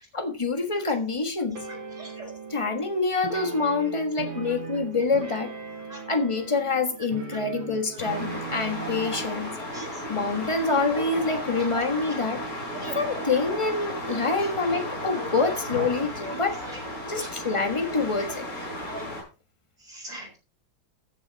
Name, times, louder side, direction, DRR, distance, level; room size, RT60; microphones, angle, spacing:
voice 1, 0.1-1.7 2.5-5.5 6.1-9.6 10.1-12.4 12.9-16.6 17.0-18.5, left 3 dB, 15° left, 1.3 m, -26 dB
sound 1, 1.5-9.3, right 5 dB, 75° right, 2.8 m, -39 dB
sound 2, 8.0-19.2, left 1 dB, 45° left, 5.8 m, -34 dB
voice 2, 19.9-20.4, right 2 dB, 50° right, 3.1 m, -40 dB
14.5 x 6.5 x 4.1 m
omnidirectional pair, 2.2 m